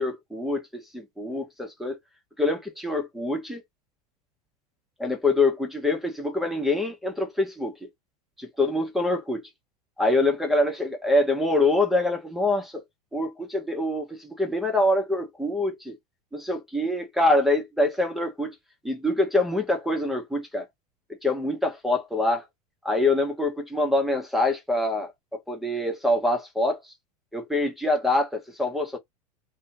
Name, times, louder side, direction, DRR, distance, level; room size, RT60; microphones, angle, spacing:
voice 1, 0.0-2.0 2.4-3.6 5.0-7.7 8.4-9.4 10.0-12.8 13.1-16.0 16.3-18.5 18.8-20.6 21.2-22.5 22.8-26.8 27.3-29.0, left 2 dB, ahead, 0.9 m, -25 dB
2.6 x 2.2 x 2.7 m
hypercardioid pair, 90°, 21 cm